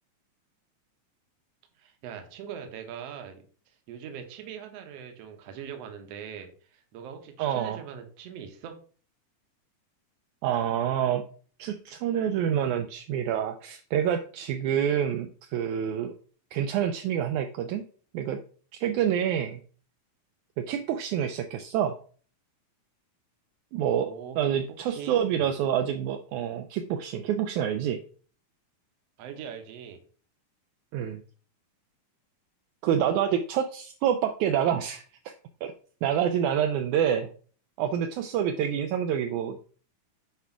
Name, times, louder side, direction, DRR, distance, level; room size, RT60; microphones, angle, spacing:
voice 1, 1.8-3.4 3.9-8.8 23.9-24.4 24.7-25.5 29.2-30.0, right 8 dB, 60° right, 6 dB, 2.0 m, -41 dB
voice 2, 7.4-7.8 10.4-11.2 11.6-16.1 16.5-17.8 18.1-18.4 18.7-19.6 20.6-22.0 23.7-24.1 24.4-28.0 30.9-31.2 32.8-35.3 35.6-35.7 36.0-37.3 37.8-39.6, right 9 dB, 80° right, 6 dB, 2.0 m, -27 dB
8.2 x 4.8 x 4.5 m, 0.42 s
omnidirectional pair, 3.6 m